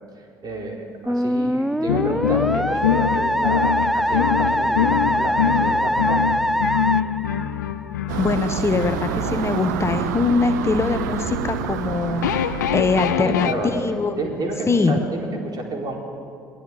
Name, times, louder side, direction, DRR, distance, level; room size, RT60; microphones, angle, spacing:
voice 1, 0.4-6.3 13.2-13.8 14.1-16.0, right 2 dB, 45° right, 1 dB, 4.5 m, -30 dB
Musical instrument, 1.1-7.9, equal, ahead, 0.5 m, -23 dB
sound 1, 1.9-13.5, left 10 dB, 80° left, 0.6 m, -25 dB
sound 2, 8.1-13.8, right 9 dB, 75° right, 0.9 m, -29 dB
voice 2, 8.2-14.1 14.7-15.0, left 4 dB, 30° left, 8 dB, 1.4 m, -22 dB
22.5 x 18.0 x 7.6 m, 2.4 s
figure-of-eight pair, 50°, 10 cm